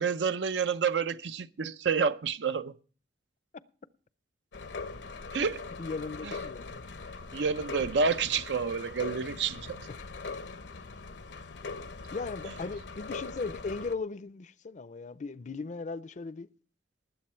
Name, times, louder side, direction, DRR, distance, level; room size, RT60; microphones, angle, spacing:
voice 1, 0.0-2.7 5.3-5.6 6.2-6.3 7.3-9.9, right 5 dB, 80° right, 0.6 m, -29 dB
sound 1, 4.5-13.9, left 4 dB, 80° left, 0.8 m, -41 dB
voice 2, 5.8-6.7 9.9-10.0 12.1-16.5, left 4 dB, 45° left, 0.5 m, -37 dB
19.5 x 7.5 x 4.4 m
head